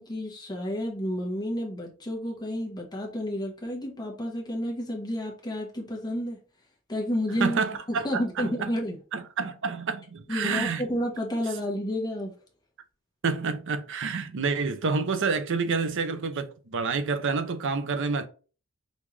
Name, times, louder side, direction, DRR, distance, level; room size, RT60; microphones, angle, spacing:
voice 1, 0.0-6.4 6.9-7.6 7.9-9.0 10.3-12.3, equal, 20° left, 1.0 m, -31 dB
voice 2, 7.4-8.7 9.1-10.8 13.2-18.3, right 4 dB, 60° right, 0.6 m, -28 dB
5.3 x 2.4 x 3.1 m
head